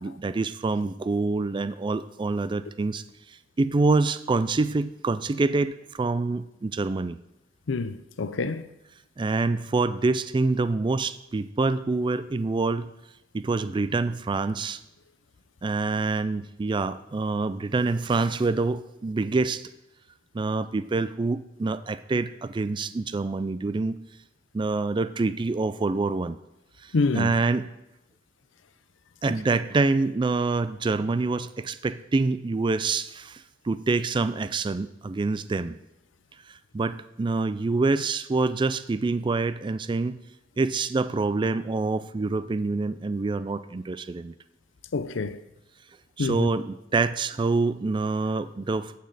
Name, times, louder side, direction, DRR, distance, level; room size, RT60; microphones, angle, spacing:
voice 1, 0.0-3.0 3.6-7.2 9.2-12.9 13.3-14.8 15.6-19.7 20.3-24.0 24.5-26.4 26.8-27.7 29.2-35.8 36.7-40.2 40.6-44.3 46.2-48.9, right 3 dB, 25° right, 0.3 m, -26 dB
voice 2, 7.7-8.7 26.9-27.3 44.9-45.4 46.2-46.5, left 3 dB, 75° left, 0.5 m, -27 dB
9.3 x 8.7 x 4.0 m
head